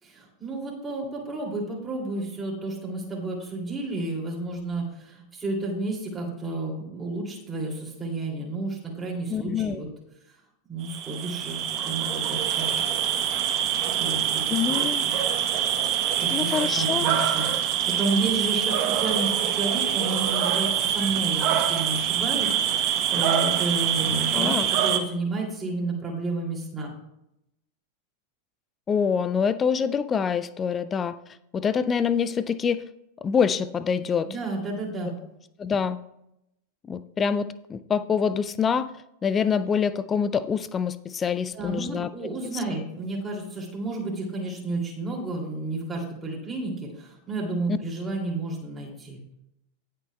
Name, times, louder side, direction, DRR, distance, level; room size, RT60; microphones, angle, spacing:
voice 1, 0.0-9.9 10.7-12.7 13.9-15.1 16.2-26.9 34.2-35.1 41.5-49.2, right 2 dB, 10° right, -3 dB, 2.6 m, -31 dB
voice 2, 9.3-9.8 14.5-15.0 16.3-17.1 24.3-24.7 28.9-31.2 31.5-32.8 33.2-34.4 35.6-36.0 36.9-38.9 39.2-42.1 47.7-47.8, left 6 dB, 20° left, 15 dB, 0.4 m, -25 dB
sound 1, 10.8-25.0, right 9 dB, 40° right, 0.9 m, -25 dB
18.0 x 6.7 x 2.3 m, 0.83 s
figure-of-eight pair, 90°, 0 cm